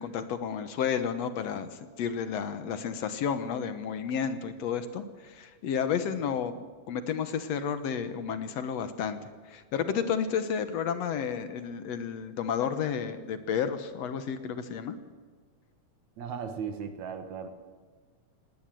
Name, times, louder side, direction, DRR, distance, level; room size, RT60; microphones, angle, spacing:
voice 1, 0.0-1.7 2.0-9.2 9.5-15.0, left 7 dB, 65° left, 10 dB, 2.1 m, -31 dB
voice 2, 16.2-17.5, right 7 dB, 75° right, 7 dB, 2.9 m, -36 dB
20.0 x 18.0 x 7.7 m, 1.5 s
omnidirectional pair, 3.3 m